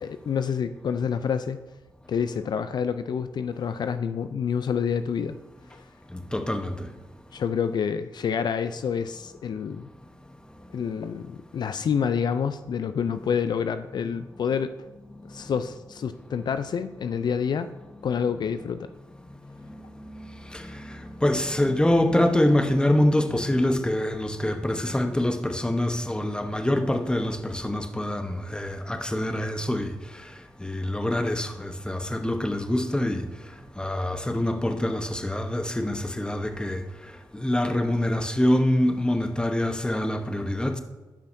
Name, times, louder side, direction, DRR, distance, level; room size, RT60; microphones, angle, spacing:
voice 1, 0.0-1.6 2.1-5.4 5.7-5.8 7.3-9.9 10.7-14.7 15.3-17.7 18.0-18.9, left 7 dB, 65° left, 0.4 m, -28 dB
voice 2, 6.1-6.9 15.3-15.6 16.3-16.4 17.9-18.0 19.6-30.3 30.6-33.3 33.8-40.8, left 1 dB, 10° left, 0.9 m, -25 dB
12.0 x 5.5 x 2.6 m
supercardioid pair, 45°, 8 cm